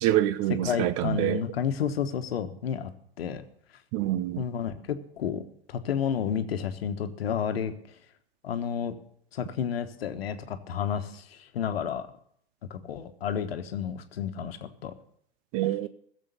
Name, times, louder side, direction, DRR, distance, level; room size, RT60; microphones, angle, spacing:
voice 1, 0.0-1.4 3.9-4.4 15.5-15.9, right 14 dB, 45° right, 0.7 m, -26 dB
voice 2, 0.6-2.9 3.2-3.5 4.4-5.4 5.7-7.7 8.4-8.9 9.3-12.1 12.7-14.9, left 8 dB, 75° left, 1.3 m, -31 dB
16.0 x 7.5 x 6.9 m
hypercardioid pair, 95°, 31 cm